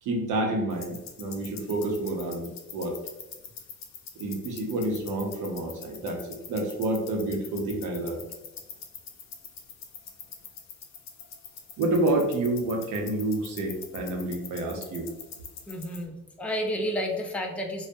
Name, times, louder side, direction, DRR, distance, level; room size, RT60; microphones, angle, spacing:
voice 1, 0.0-3.0 4.2-8.2 11.8-15.1, right 2 dB, 80° right, 2 dB, 0.7 m, -29 dB
sound 1, 0.7-16.0, left 6 dB, 65° left, 0.5 m, -45 dB
voice 2, 15.7-17.9, equal, 5° left, 1 dB, 0.4 m, -31 dB
2.3 x 2.0 x 2.5 m, 1.0 s
cardioid pair, 90°, 30 cm